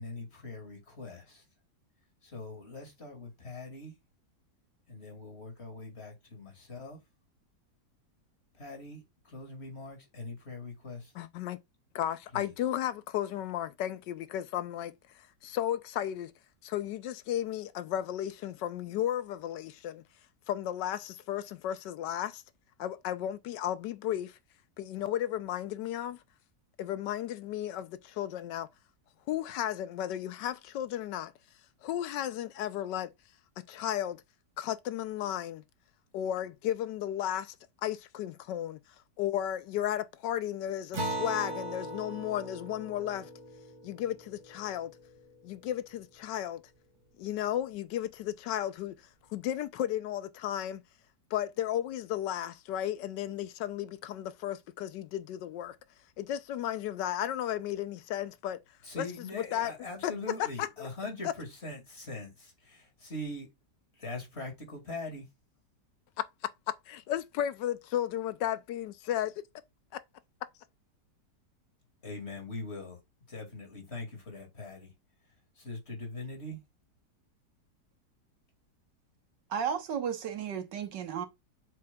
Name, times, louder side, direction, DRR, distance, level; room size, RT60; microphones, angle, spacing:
voice 1, 0.0-1.5 2.2-4.0 4.9-7.0 8.5-11.1 12.3-12.5 58.8-63.5 63.9-65.3 72.0-73.0 73.3-74.9 75.2-76.6, left 2 dB, 40° left, 2.4 m, -42 dB
voice 2, 11.2-11.6 11.9-16.3 16.6-20.0 20.5-22.4 22.8-24.4 24.8-26.2 26.8-28.7 29.3-31.3 31.8-33.1 33.7-34.2 34.6-35.6 36.1-37.6 37.8-38.8 39.2-43.3 43.8-44.9 45.4-46.6 47.2-49.0 49.3-50.8 51.3-55.8 56.2-58.6 59.0-59.1 59.5-59.7 60.0-60.1 66.9-69.3, left 11 dB, 90° left, 1.3 m, -34 dB
Acoustic guitar, 40.9-45.8, right 1 dB, 65° right, 2.3 m, -40 dB
voice 3, 79.5-81.3, right 7 dB, 85° right, 1.8 m, -33 dB
7.7 x 7.0 x 2.3 m
omnidirectional pair, 1.8 m